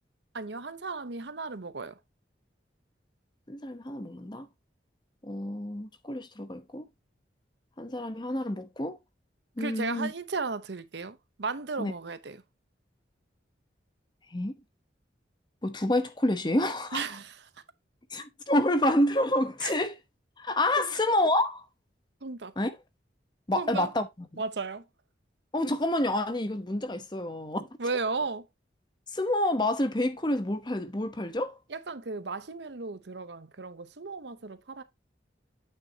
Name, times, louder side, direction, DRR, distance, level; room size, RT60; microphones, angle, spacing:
voice 1, 0.3-2.0 9.6-12.4 16.9-17.4 19.6-19.7 20.8-20.9 22.2-22.5 23.5-23.9 24.4-24.9 27.8-28.5 31.7-34.8, right 4 dB, 70° right, 0.8 m, -35 dB
voice 2, 3.5-4.5 5.2-6.9 7.8-9.0 9.6-10.1 11.8-11.9 14.3-14.5 15.6-17.0 18.1-19.9 20.4-21.6 22.6-22.7 23.5-24.1 24.3-24.4 25.5-27.7 29.1-31.6, left 1 dB, 25° left, 0.9 m, -28 dB
8.9 x 6.4 x 2.8 m
head